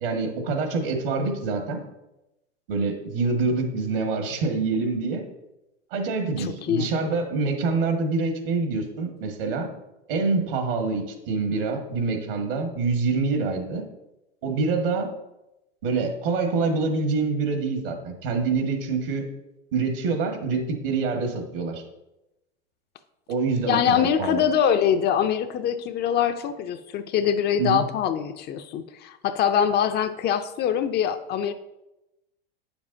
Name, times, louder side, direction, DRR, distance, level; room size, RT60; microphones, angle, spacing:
voice 1, 0.0-1.8 2.7-5.3 5.9-9.7 10.1-13.8 14.4-15.1 15.8-19.3 19.7-21.8 23.3-24.4 27.6-27.8, right 4 dB, 65° right, 4 dB, 1.8 m, -26 dB
voice 2, 6.4-6.9 23.7-31.5, left 8 dB, 35° left, 9 dB, 0.5 m, -24 dB
9.3 x 7.0 x 2.7 m, 0.95 s
hypercardioid pair, 95°, 29 cm